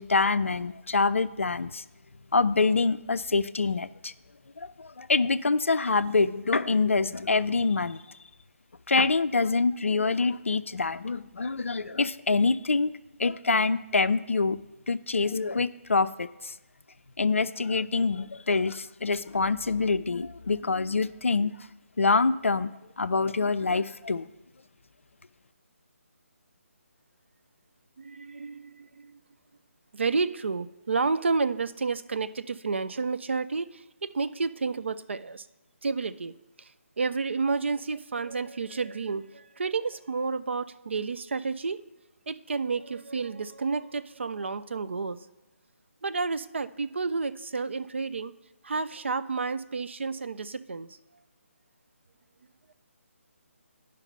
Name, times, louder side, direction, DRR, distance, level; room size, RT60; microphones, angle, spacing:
voice 1, 0.0-1.8 2.3-4.1 4.6-8.0 8.9-12.9 13.2-14.6 14.9-16.5 17.2-21.6 22.0-24.3, left 4 dB, 65° left, 14 dB, 0.4 m, -25 dB
voice 2, 28.0-29.2 29.9-35.5 35.8-36.7 37.0-41.8 42.3-45.2 46.0-48.3 48.6-51.0, right 4 dB, 55° right, 12 dB, 0.4 m, -30 dB
10.5 x 5.2 x 5.4 m, 1.0 s
figure-of-eight pair, 145°, 8 cm